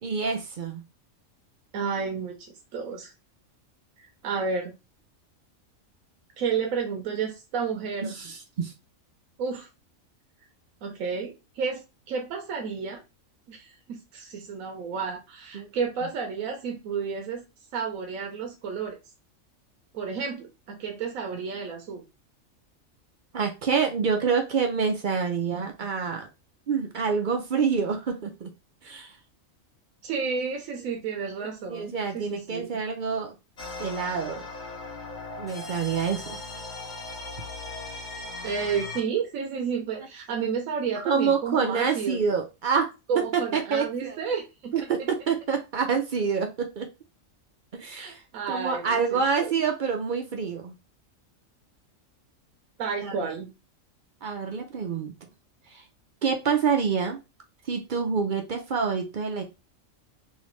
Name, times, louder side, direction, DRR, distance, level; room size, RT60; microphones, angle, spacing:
voice 1, 0.0-0.8 8.0-8.7 15.5-15.7 23.3-26.3 26.7-28.5 28.8-29.1 31.4-33.3 33.8-34.5 35.4-36.4 41.0-42.9 43.3-44.2 44.7-46.9 47.7-48.2 48.5-50.7 53.0-53.3 54.2-55.1 55.7-55.8 56.2-57.2 57.7-59.4, right 6 dB, 60° right, 4 dB, 0.5 m, -27 dB
voice 2, 1.7-3.1 4.0-4.7 6.4-8.1 9.4-9.7 10.8-13.0 13.5-17.4 17.7-19.0 19.9-22.0 30.0-32.7 38.4-42.2 43.1-44.7 45.0-45.1 47.9-49.5 52.8-53.5, right 5 dB, 75° right, 2 dB, 1.1 m, -31 dB
sound 1, 33.6-39.0, left 3 dB, 40° left, 0.9 m, -38 dB
3.2 x 2.7 x 3.0 m, 0.26 s
omnidirectional pair, 1.4 m